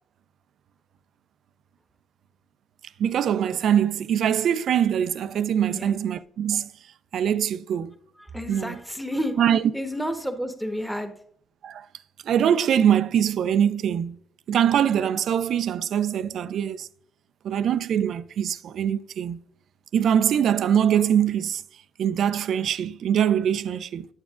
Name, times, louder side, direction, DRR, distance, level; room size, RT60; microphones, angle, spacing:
voice 1, 3.0-6.7 7.1-7.9 8.5-8.8 9.4-9.6 11.6-11.9 12.2-14.2 14.5-16.9 17.4-19.4 19.9-21.6 22.0-24.1, right 9 dB, 70° right, 0.4 m, -23 dB
voice 2, 8.2-9.4 9.7-11.1, equal, ahead, 1.2 m, -30 dB
8.7 x 7.2 x 2.5 m
cardioid pair, 90°, 0 cm